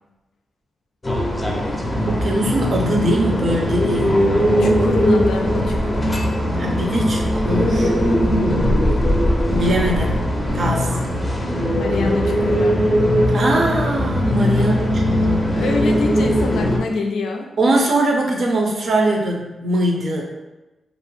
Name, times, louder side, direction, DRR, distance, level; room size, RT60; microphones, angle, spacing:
sound 1, 1.0-16.8, equal, 25° left, 0.5 m, -19 dB
voice 1, 2.1-4.2 6.6-7.9 9.5-10.2 10.5-11.0 13.3-15.7 17.6-20.2, right 1 dB, 60° right, 0 dB, 0.5 m, -21 dB
voice 2, 4.6-6.4 8.2-8.8 11.7-12.8 14.6-14.9 15.5-17.5, left 3 dB, 85° left, 2 dB, 0.4 m, -25 dB
2.5 x 2.0 x 3.1 m, 1.0 s
cardioid pair, 75°, 0 cm